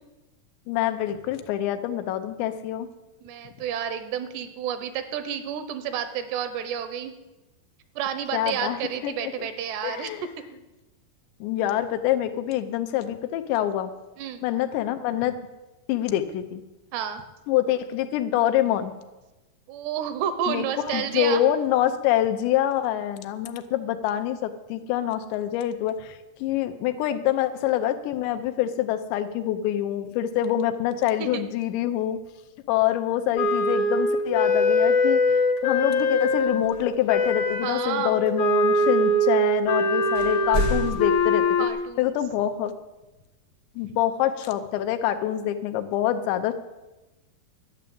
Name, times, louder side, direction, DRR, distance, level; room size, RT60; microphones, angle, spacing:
voice 1, 0.7-2.9 8.3-9.5 9.8-10.2 11.4-13.9 14.4-15.4 15.9-16.6 17.5-18.9 20.5-32.2 32.7-41.4 42.0-42.7 43.8-46.5, left 11 dB, 85° left, 8 dB, 3.0 m, -26 dB
voice 2, 3.2-7.2 8.0-10.1 10.5-10.6 14.2-14.4 16.9-17.2 19.7-21.4 31.2-31.4 37.6-38.2 41.6-42.2, right 9 dB, 80° right, 10 dB, 2.9 m, -30 dB
Wind instrument woodwind instrument, 33.4-36.7 37.1-41.7, left 1 dB, 70° left, 1.8 m, -22 dB
sound 1, 36.4-37.6 38.5-39.3 39.6-39.7 40.0-41.9, equal, 40° right, 0.8 m, -32 dB
12.5 x 6.8 x 8.6 m, 1.1 s
omnidirectional pair, 4.9 m